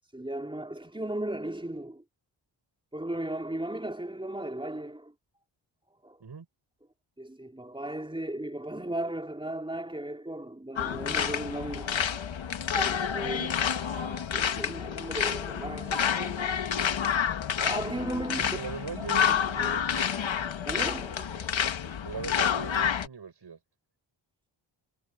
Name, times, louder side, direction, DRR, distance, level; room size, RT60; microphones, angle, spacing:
voice 1, 0.1-2.0 2.9-5.1 6.0-6.2 7.2-12.0 12.7-16.9 17.6-18.6 19.0-19.8 20.7-21.6, right 1 dB, 10° right, 4.4 m, -36 dB
sound 1, 10.8-23.1, left 8 dB, 65° left, 1.7 m, -29 dB
voice 2, 18.4-20.1 22.0-23.6, right 6 dB, 55° right, 7.3 m, -40 dB
cardioid pair, 80°, 49 cm